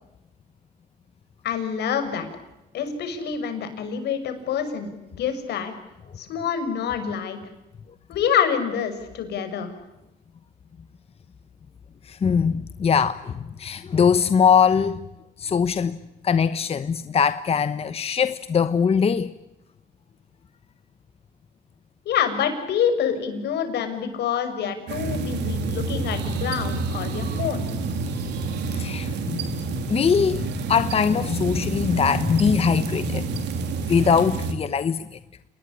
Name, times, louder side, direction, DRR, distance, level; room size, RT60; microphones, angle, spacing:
voice 1, 1.4-2.3 2.7-5.7 6.2-7.4 8.1-9.7 22.0-27.7, left 8 dB, 70° left, 6.4 m, -26 dB
voice 2, 12.1-15.0 15.4-16.0 16.2-19.3 28.7-29.4 29.9-33.5 33.9-35.1, left 6 dB, 35° left, 1.1 m, -21 dB
sound 1, 24.9-34.5, right 3 dB, 75° right, 3.9 m, -28 dB
28.5 x 20.5 x 9.9 m
cardioid pair, 105°, 18 cm